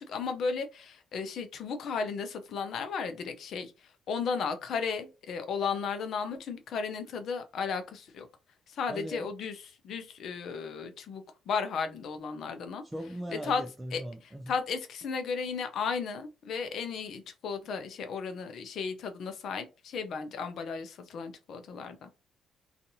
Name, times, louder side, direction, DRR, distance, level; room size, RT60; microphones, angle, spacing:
voice 1, 0.0-3.7 4.1-8.3 8.7-12.8 13.3-13.6 13.9-22.1, left 5 dB, 65° left, 0.5 m, -34 dB
voice 2, 8.9-9.3 12.9-14.5, equal, 10° right, 0.5 m, -39 dB
2.6 x 2.4 x 2.7 m
hypercardioid pair, 55°, 0 cm